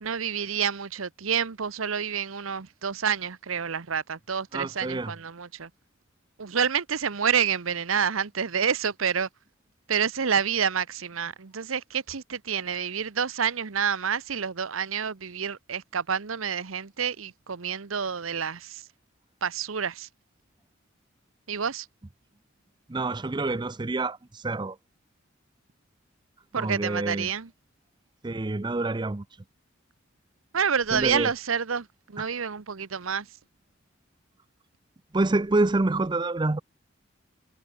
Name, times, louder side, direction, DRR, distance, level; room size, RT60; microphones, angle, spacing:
voice 1, 0.0-5.7 6.4-9.3 9.9-18.8 19.4-20.1 21.5-21.9 26.5-27.5 30.5-33.3, right 7 dB, 90° right, 0.9 m, -28 dB
voice 2, 4.5-5.1 22.9-24.8 26.5-27.3 28.2-29.2 30.9-31.3 35.1-36.6, right 2 dB, 20° right, 0.5 m, -27 dB
head